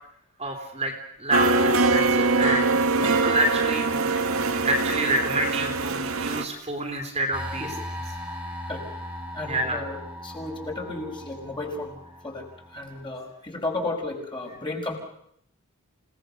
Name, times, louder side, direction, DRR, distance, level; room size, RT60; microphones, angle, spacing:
voice 1, 0.4-0.9 1.2-2.7 3.1-7.7 9.4-9.8, right 1 dB, 30° right, 4 dB, 3.3 m, -28 dB
sound 1, 1.3-6.4, right 3 dB, 65° right, 1.8 m, -23 dB
sound 2, 7.3-13.0, left 1 dB, 5° right, 3.2 m, -38 dB
voice 2, 9.3-10.0 10.2-15.0, left 2 dB, 20° left, 0 dB, 5.4 m, -33 dB
29.0 x 18.5 x 6.6 m, 0.71 s
head